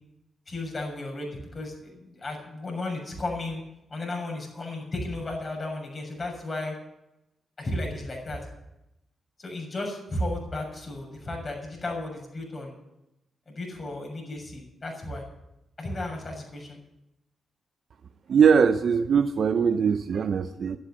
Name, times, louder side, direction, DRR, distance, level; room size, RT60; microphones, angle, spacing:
voice 1, 0.5-3.6 3.9-6.7 7.6-8.4 9.4-12.7 13.5-15.2 15.8-16.8, left 2 dB, 45° left, 0 dB, 6.8 m, -34 dB
voice 2, 18.3-20.8, right 6 dB, 65° right, 10 dB, 0.6 m, -21 dB
11.5 x 9.7 x 9.0 m, 0.89 s
hypercardioid pair, 40°, 0 cm